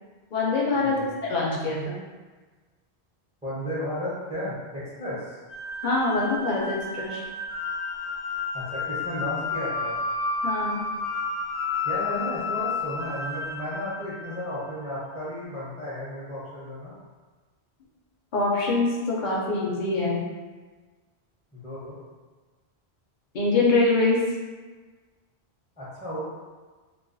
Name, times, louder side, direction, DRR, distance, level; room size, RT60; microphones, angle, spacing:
voice 1, 0.3-1.0 1.2-2.0 5.8-7.2 10.4-10.8 18.3-20.2 23.3-24.2, left 3 dB, 55° left, -4 dB, 0.6 m, -24 dB
voice 2, 3.4-5.4 8.5-9.9 11.8-16.9 21.5-22.0 25.8-26.2, left 1 dB, 10° right, -9 dB, 0.5 m, -33 dB
sound 1, 5.5-14.7, left 3 dB, 90° left, 0.9 m, -31 dB
2.3 x 2.1 x 2.5 m, 1.3 s
omnidirectional pair, 1.1 m